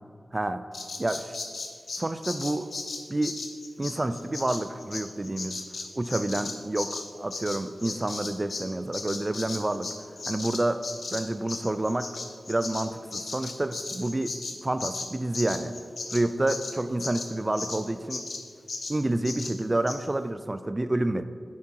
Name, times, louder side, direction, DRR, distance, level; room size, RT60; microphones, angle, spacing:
voice 1, 0.3-0.6 1.0-1.4 2.0-2.7 3.1-3.4 3.8-5.6 5.9-9.9 10.3-10.8 11.1-12.1 12.5-14.4 14.6-15.8 16.1-18.2 18.9-21.2, right 2 dB, 25° right, 11 dB, 0.4 m, -29 dB
Bird vocalization bird call bird song, 0.7-8.7 8.9-17.8 18.1-18.4 18.7-19.0 19.2-19.5 19.9-20.0, left 3 dB, 70° left, 1.0 m, -36 dB
8.6 x 7.4 x 4.5 m, 2.3 s
wide cardioid pair, 100°, 0 cm